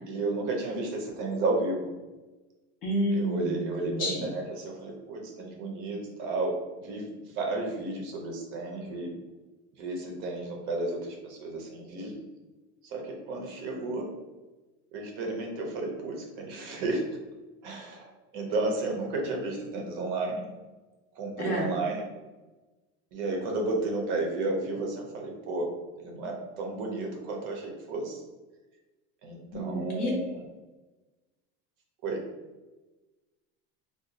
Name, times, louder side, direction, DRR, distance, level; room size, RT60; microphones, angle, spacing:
voice 1, 0.1-1.9 3.1-7.1 7.3-9.1 9.8-12.2 12.8-14.1 14.9-17.0 17.6-20.4 21.1-22.0 23.1-25.7 26.0-28.2 29.2-30.4 32.0-32.2, right 2 dB, 40° right, 1 dB, 0.5 m, -32 dB
voice 2, 2.8-4.3 21.4-21.8 29.5-30.1, equal, 30° left, -2 dB, 0.5 m, -30 dB
2.5 x 2.3 x 3.9 m, 1.2 s
cardioid pair, 180°, 32 cm